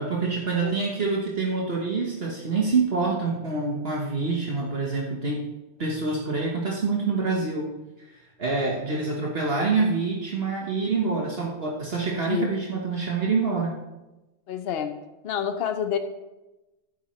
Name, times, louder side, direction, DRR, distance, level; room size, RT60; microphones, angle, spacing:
voice 1, 0.0-5.5 5.8-7.7 8.1-13.8, right 4 dB, 55° right, -2 dB, 1.5 m, -26 dB
voice 2, 14.5-14.9 15.2-16.0, left 8 dB, 60° left, 8 dB, 0.9 m, -28 dB
11.0 x 9.9 x 3.2 m, 1.0 s
omnidirectional pair, 1.2 m